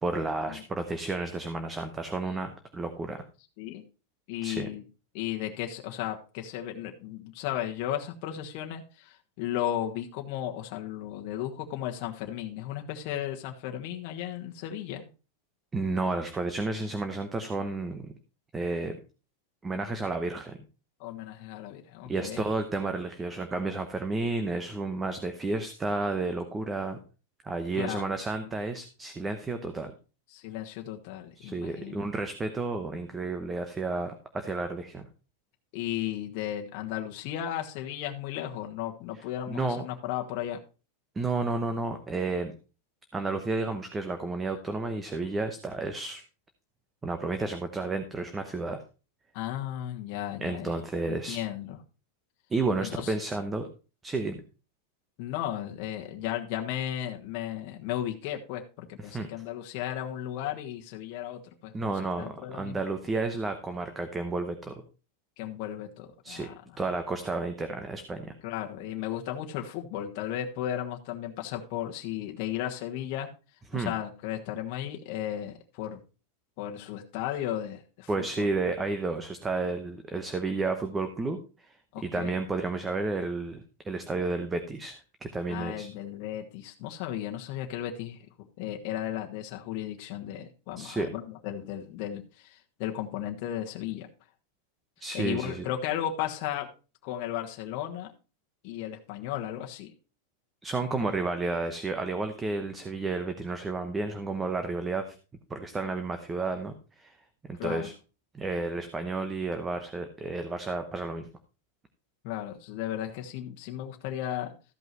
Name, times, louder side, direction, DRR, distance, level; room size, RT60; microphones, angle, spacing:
voice 1, 0.0-3.2 4.4-4.7 15.7-18.1 18.5-19.0 19.6-20.6 22.1-27.0 27.4-29.9 31.4-35.1 39.5-39.8 41.2-42.5 43.1-46.2 47.0-48.8 50.4-51.4 52.5-53.7 54.0-54.4 59.0-59.3 61.7-64.8 66.2-66.5 66.8-68.3 73.7-73.9 78.1-81.8 82.0-85.9 90.8-91.1 95.0-95.7 100.6-105.1 105.5-107.2 107.5-107.9 108.3-111.3, right 3 dB, 10° right, 8 dB, 0.9 m, -31 dB
voice 2, 4.3-4.8 5.1-15.1 21.0-22.4 27.7-28.1 30.3-32.0 35.7-40.6 49.3-50.7 51.1-51.8 52.8-53.1 55.2-62.8 65.4-66.8 68.4-73.3 73.7-76.0 76.6-78.5 81.9-82.3 85.5-88.3 88.6-94.1 95.1-96.7 97.0-98.1 98.6-99.9 107.6-107.9 112.2-114.5, left 11 dB, 45° left, 2 dB, 1.3 m, -35 dB
14.0 x 5.5 x 4.6 m, 0.33 s
supercardioid pair, 165°, 0 cm